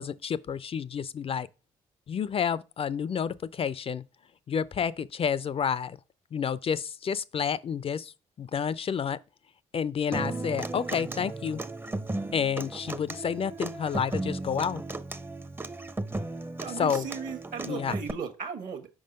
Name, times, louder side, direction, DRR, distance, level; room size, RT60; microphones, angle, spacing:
voice 1, 0.0-1.5 2.1-4.0 4.5-6.0 6.3-8.1 8.4-9.2 9.7-11.6 12.3-14.8 16.8-17.0 17.7-17.9, left 7 dB, 40° left, 0.4 m, -30 dB
Human voice / Acoustic guitar, 10.1-18.1, right 2 dB, 15° right, 0.5 m, -35 dB
voice 2, 16.6-18.9, right 6 dB, 60° right, 1.2 m, -36 dB
5.1 x 3.7 x 5.2 m
hypercardioid pair, 50°, 16 cm